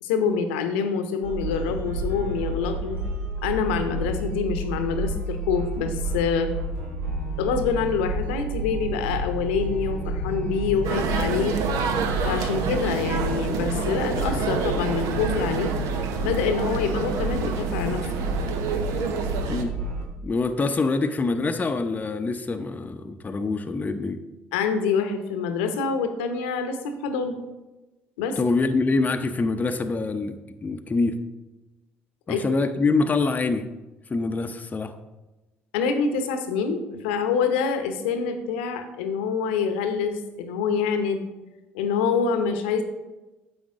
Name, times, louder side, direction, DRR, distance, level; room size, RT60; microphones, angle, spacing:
voice 1, 0.0-3.0 3.4-6.5 7.4-11.6 12.2-15.7 16.2-18.1 24.5-27.4 28.2-28.4 32.3-32.4 35.7-41.3 41.7-42.8, left 6 dB, 75° left, 8 dB, 0.9 m, -26 dB
sound 1, 1.2-20.0, right 2 dB, 80° right, 1.6 m, -30 dB
sound 2, 10.8-19.6, right 5 dB, 65° right, 0.8 m, -29 dB
voice 2, 19.5-19.8 20.2-24.2 28.4-31.2 32.3-33.7 34.1-34.9, left 3 dB, 25° left, 7 dB, 0.7 m, -25 dB
9.7 x 7.2 x 3.6 m, 1.1 s
figure-of-eight pair, 55°, 6 cm